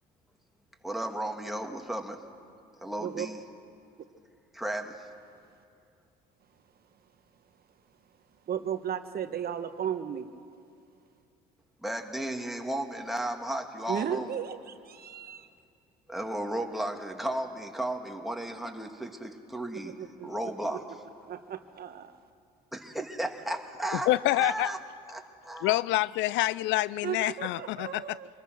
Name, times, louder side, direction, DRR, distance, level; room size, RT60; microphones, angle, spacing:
voice 1, 0.8-2.2 2.8-3.4 4.5-5.1 11.8-14.3 16.1-19.9 20.2-20.8 22.7-24.8 25.1-25.8, right 1 dB, ahead, 2.6 m, -34 dB
voice 2, 8.5-10.3 13.9-15.5 20.0-20.3 20.6-20.8 21.3-22.2 27.0-28.3, right 9 dB, 45° right, 1.3 m, -35 dB
voice 3, 24.1-24.7 25.6-28.2, left 17 dB, 60° left, 0.4 m, -27 dB
25.5 x 20.5 x 6.3 m
hypercardioid pair, 60°, 21 cm